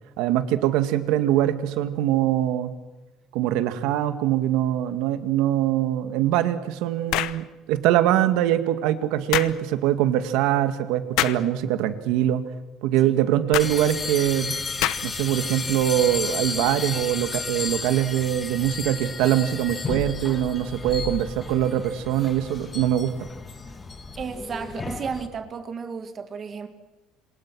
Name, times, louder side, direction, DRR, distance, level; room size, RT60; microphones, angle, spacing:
voice 1, 0.2-2.7 3.3-12.4 12.8-14.6 15.0-23.1, right 12 dB, 75° right, 10 dB, 2.0 m, -23 dB
sound 1, 7.1-7.4 9.3-9.6 11.2-11.4 13.5-13.7 14.8-15.2, left 15 dB, 65° left, 1.0 m, -25 dB
sound 2, 13.6-25.3, left 4 dB, 20° left, 1.6 m, -33 dB
voice 2, 24.2-26.7, right 6 dB, 30° right, 8 dB, 1.8 m, -33 dB
27.0 x 26.5 x 6.3 m, 1.1 s
cardioid pair, 165°, 0 cm